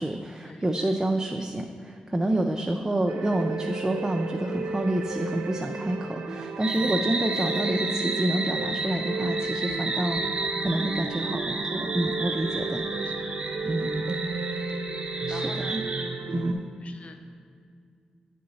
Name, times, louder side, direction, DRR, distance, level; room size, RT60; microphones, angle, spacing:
voice 1, 0.0-12.8 13.6-14.2 15.3-15.8 16.3-16.6, right 1 dB, 20° right, 2 dB, 0.4 m, -28 dB
sound 1, 3.1-16.5, right 3 dB, 85° right, 0.5 m, -33 dB
sound 2, 6.6-16.1, right 3 dB, 40° right, 0.8 m, -32 dB
voice 2, 12.8-13.3 14.1-14.2 15.3-15.8 16.2-16.4 16.8-17.2, left 3 dB, 50° left, 5 dB, 0.6 m, -46 dB
8.5 x 3.8 x 4.1 m, 2.2 s
cardioid pair, 65°, 3 cm